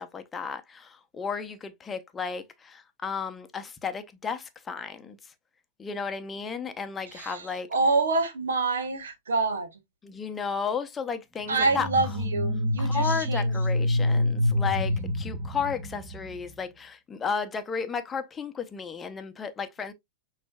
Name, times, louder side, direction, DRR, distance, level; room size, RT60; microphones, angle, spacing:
voice 1, 0.0-5.3 5.8-7.7 10.0-11.9 12.8-19.9, left 6 dB, 20° left, 0.7 m, -33 dB
voice 2, 7.1-9.7 11.5-13.5, right 3 dB, 85° right, 1.1 m, -27 dB
sound 1, 11.6-16.4, left 1 dB, 20° right, 1.4 m, -27 dB
6.1 x 3.1 x 2.2 m
hypercardioid pair, 110°, 0 cm